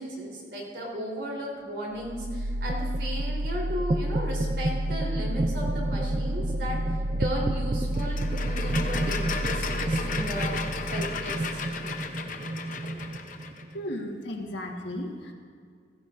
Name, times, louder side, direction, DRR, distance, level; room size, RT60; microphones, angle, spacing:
voice 1, 0.0-10.5 10.9-11.9, equal, 65° right, -3 dB, 3.6 m, -35 dB
sound 1, 2.0-13.9, right 1 dB, 35° right, 0.4 m, -29 dB
sound 2, 7.9-13.6, left 5 dB, 45° left, 0.7 m, -35 dB
voice 2, 13.7-15.3, left 1 dB, 80° left, 1 dB, 1.6 m, -35 dB
16.0 x 15.0 x 2.6 m, 2.1 s
head